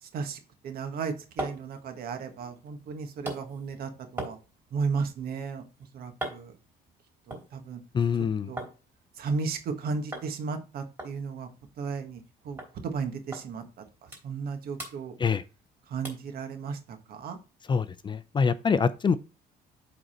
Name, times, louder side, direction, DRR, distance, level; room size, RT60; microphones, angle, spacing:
voice 1, 0.0-4.4 4.7-5.6 5.9-6.5 7.3-7.8 8.5-8.7 9.2-11.5 11.8-13.6 14.2-15.1 15.9-17.4, right 5 dB, 65° right, 1.5 m, -34 dB
sound 1, 1.1-8.8 9.1-9.7 10.1-10.3 10.6-10.7 11.0-12.3 12.6-12.7 13.3-13.5 13.8-14.5 14.7-15.7 16.0-16.3 16.8-16.9, right 1 dB, 10° right, 3.1 m, -42 dB
voice 2, 7.9-8.5 15.2-15.4 17.7-19.2, left 6 dB, 30° left, 0.5 m, -25 dB
7.8 x 4.0 x 4.3 m
cardioid pair, 110°, 17 cm